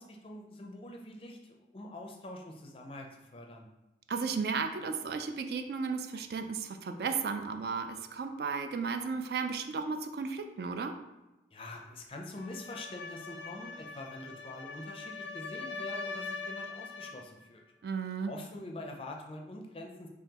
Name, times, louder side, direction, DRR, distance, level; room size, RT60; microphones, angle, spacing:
voice 1, 0.0-3.7 11.5-17.6 18.3-20.1, left 1 dB, 30° left, 2 dB, 0.4 m, -45 dB
voice 2, 4.1-10.9 17.8-18.3, right 5 dB, 60° right, 7 dB, 0.3 m, -34 dB
sound 1, 12.4-17.3, left 4 dB, 90° left, 0.4 m, -42 dB
3.7 x 3.0 x 2.9 m, 1.0 s
head